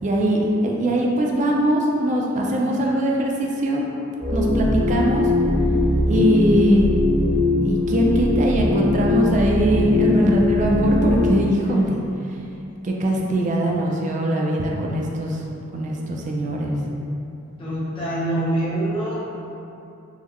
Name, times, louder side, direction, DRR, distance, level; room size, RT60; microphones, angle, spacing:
voice 1, 0.0-3.9 4.3-5.3 6.1-6.9 7.6-12.0 12.8-15.4 15.7-16.8, right 1 dB, 35° right, -1 dB, 0.3 m, -21 dB
sound 1, 4.2-11.4, left 2 dB, 80° right, 1.1 m, -21 dB
voice 2, 17.6-19.1, right 1 dB, 25° left, -8 dB, 0.7 m, -25 dB
3.7 x 2.1 x 3.0 m, 2.7 s
head